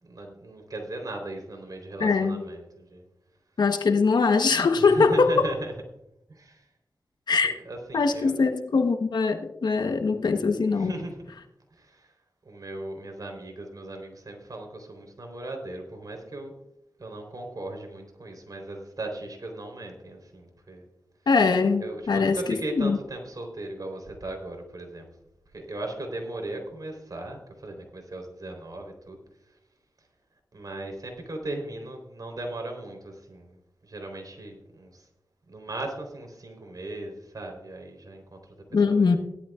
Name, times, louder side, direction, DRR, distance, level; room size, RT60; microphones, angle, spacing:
voice 1, 0.0-3.0 4.8-5.7 6.3-6.7 7.4-8.3 10.7-11.3 11.7-12.1 12.4-16.6 17.0-20.9 21.8-25.1 25.5-29.2 30.5-33.6 33.8-35.1 35.5-38.5 38.9-39.2, right 2 dB, 60° right, 3.9 m, -38 dB
voice 2, 2.0-2.4 3.6-5.5 7.3-7.5 7.9-11.0 21.3-23.0 38.7-39.2, left 4 dB, 75° left, 1.2 m, -22 dB
17.0 x 12.0 x 2.5 m
cardioid pair, 40°, 7 cm